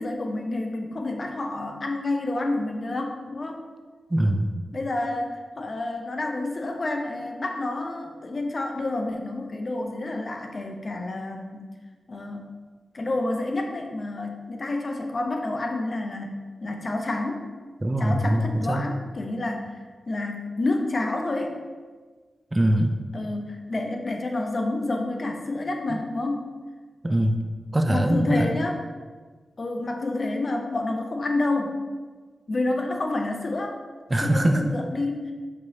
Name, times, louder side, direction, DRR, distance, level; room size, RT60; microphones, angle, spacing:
voice 1, 0.0-3.6 4.7-11.7 12.1-12.5 12.9-17.5 18.0-21.6 23.1-26.5 27.9-28.8 29.6-31.8 32.5-33.8 34.2-35.3, left 2 dB, 55° left, 3 dB, 0.6 m, -29 dB
voice 2, 4.1-4.5 17.8-18.9 22.5-23.0 27.0-27.4 27.7-28.5 34.1-34.6, right 1 dB, 30° right, 5 dB, 0.4 m, -22 dB
5.3 x 3.1 x 2.7 m, 1.4 s
cardioid pair, 45°, 0 cm